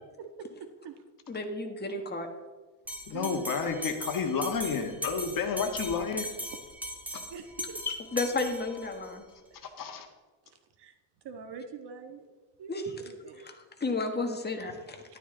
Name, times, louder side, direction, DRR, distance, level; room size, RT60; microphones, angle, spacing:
voice 1, 0.2-1.0 3.1-3.5 7.3-7.8 9.5-9.6 10.4-10.9 11.2-12.3 12.6-12.7 13.0-13.5, right 6 dB, 50° right, 6 dB, 1.6 m, -44 dB
voice 2, 1.3-2.3 7.8-9.2 12.7-12.9 13.5-15.0, left 3 dB, 20° left, 4 dB, 1.6 m, -32 dB
Bell, 2.9-9.1, equal, 5° right, 1.6 m, -39 dB
voice 3, 3.1-6.3 9.6-10.1, left 5 dB, 40° left, 4 dB, 1.7 m, -31 dB
12.5 x 12.0 x 3.9 m, 1.3 s
cardioid pair, 125°, 50 cm